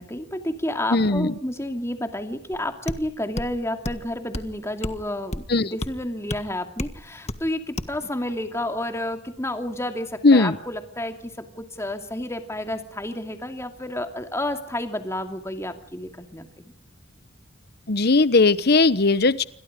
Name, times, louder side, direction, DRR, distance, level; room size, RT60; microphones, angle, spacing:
voice 1, 0.0-16.5, left 1 dB, 15° left, 6 dB, 2.5 m, -30 dB
voice 2, 0.9-1.3 5.5-5.8 10.2-10.6 17.9-19.4, left 3 dB, 50° left, 15 dB, 1.0 m, -18 dB
sound 1, 2.5-2.6 2.9-3.0 3.4-3.5 3.8-4.0 4.3-4.5 4.8-5.0 5.3-5.5 5.8-5.9 6.3-6.4 6.8-7.0 7.3-7.4 7.8-7.9, left 1 dB, 35° left, 1.6 m, -30 dB
28.0 x 25.5 x 5.1 m, 0.62 s
head